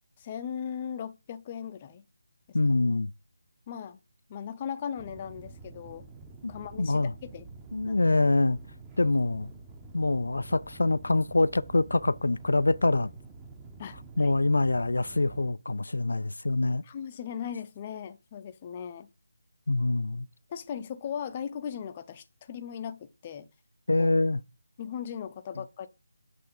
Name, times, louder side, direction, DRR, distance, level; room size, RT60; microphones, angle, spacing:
voice 1, 0.2-2.0 3.7-4.0 4.3-6.0 6.5-7.5 7.8-8.0 13.8-14.4 16.6-19.1 20.5-23.5 24.0-24.1 24.8-25.9, left 8 dB, 25° left, 0.6 m, -38 dB
voice 2, 2.5-3.1 6.4-6.5 6.8-7.1 7.7-8.6 9.0-9.5 9.9-13.1 14.2-16.8 19.7-20.3 23.9-24.4, left 2 dB, 75° left, 0.3 m, -25 dB
sound 1, 5.0-15.5, right 3 dB, 15° right, 0.9 m, -48 dB
7.9 x 3.3 x 5.1 m
figure-of-eight pair, 160°, 0 cm